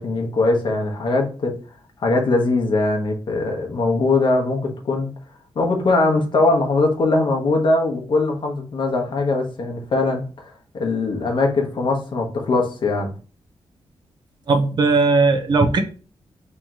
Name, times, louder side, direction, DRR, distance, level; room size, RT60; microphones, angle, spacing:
voice 1, 0.0-1.6 2.0-5.1 5.5-10.2 10.7-13.1, left 2 dB, 50° left, 2 dB, 0.9 m, -21 dB
voice 2, 14.5-15.8, right 3 dB, 45° right, 6 dB, 0.6 m, -17 dB
3.1 x 2.8 x 3.6 m, 0.37 s
wide cardioid pair, 150°, 10 cm